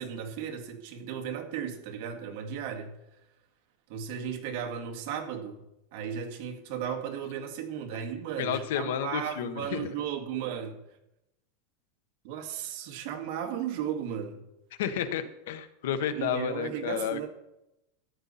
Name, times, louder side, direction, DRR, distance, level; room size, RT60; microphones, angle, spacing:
voice 1, 0.0-3.0 3.9-5.6 5.9-10.8 12.2-14.5 16.1-17.3, right 8 dB, 45° right, 2.0 m, -35 dB
voice 2, 8.4-9.8 14.8-17.2, left 8 dB, 70° left, 1.1 m, -31 dB
14.0 x 9.8 x 4.2 m
supercardioid pair, 175°, 0 cm